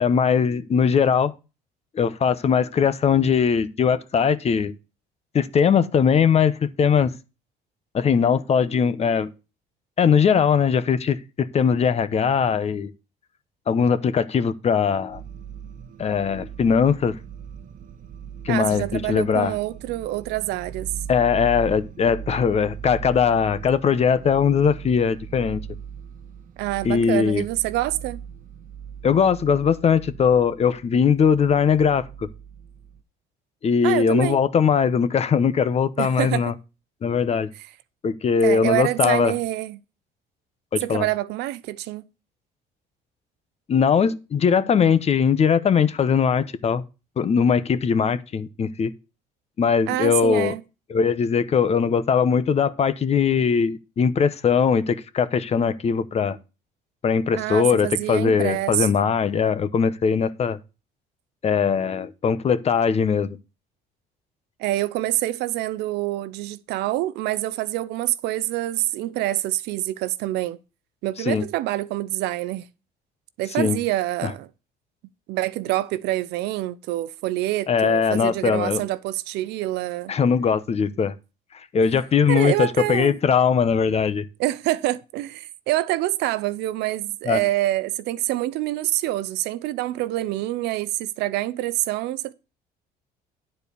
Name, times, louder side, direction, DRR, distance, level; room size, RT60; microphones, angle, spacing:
voice 1, 0.0-1.3 1.9-4.7 5.3-7.1 7.9-9.3 10.0-12.9 13.7-15.2 16.0-17.2 18.4-19.5 21.1-25.6 26.8-27.4 29.0-32.3 33.6-36.5 37.0-37.5 38.0-39.3 40.7-41.0 43.7-46.8 47.2-48.9 49.6-50.5 50.9-56.4 57.0-60.6 61.4-63.4 71.3-71.4 73.6-73.8 74.2-74.3 77.7-78.8 80.1-81.1 81.7-84.3 87.3-87.4, left 6 dB, 40° left, 0.9 m, -20 dB
sound 1, 15.1-33.0, right 8 dB, 50° right, 1.1 m, -39 dB
voice 2, 18.5-20.9 26.6-28.2 33.8-34.4 36.0-36.5 38.4-39.8 40.8-42.0 49.9-50.6 57.4-59.1 64.6-70.6 71.0-72.7 73.4-74.5 75.3-80.1 82.3-83.2 84.4-92.3, right 16 dB, 85° right, 0.7 m, -26 dB
10.0 x 4.4 x 6.9 m
cardioid pair, 110°, 17 cm